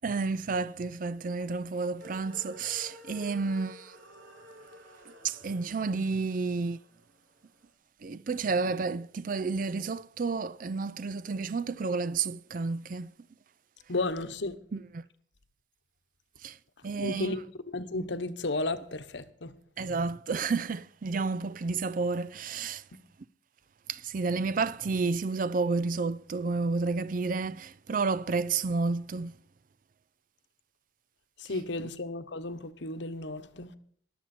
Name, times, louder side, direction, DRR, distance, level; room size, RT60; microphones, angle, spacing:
voice 1, 0.0-3.9 5.2-6.8 8.0-13.1 14.7-15.0 16.4-16.6 16.8-17.4 19.8-22.8 23.9-29.3, right 4 dB, 45° right, 0.4 m, -31 dB
sound 1, 2.0-7.4, left 1 dB, 70° right, 3.7 m, -52 dB
voice 2, 13.9-14.5 17.0-19.5 31.4-33.7, left 2 dB, 65° left, 1.0 m, -33 dB
21.5 x 7.6 x 4.3 m
head